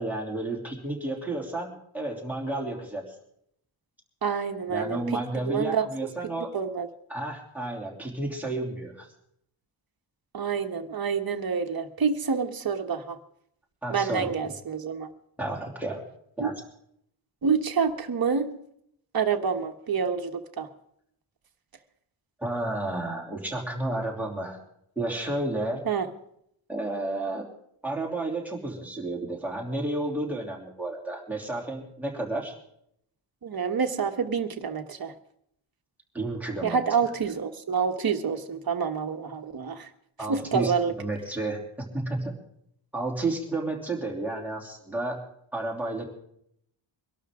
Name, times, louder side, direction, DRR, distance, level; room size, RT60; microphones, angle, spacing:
voice 1, 0.0-3.1 4.7-6.5 7.1-9.1 13.8-14.5 15.4-16.0 16.4-16.5 22.4-24.6 24.9-25.8 26.7-27.5 27.8-32.5 36.1-36.8 40.2-42.4 42.9-45.2 45.5-46.0, right 2 dB, 5° right, -2 dB, 3.1 m, -31 dB
voice 2, 4.2-5.2 5.5-5.9 6.4-6.9 10.3-13.2 13.9-15.1 16.4-16.5 17.4-18.5 19.1-20.7 25.8-26.1 33.4-35.1 36.6-39.9 40.3-40.9, right 6 dB, 50° right, 5 dB, 1.4 m, -27 dB
23.5 x 12.0 x 3.7 m, 0.72 s
wide cardioid pair, 150°, 46 cm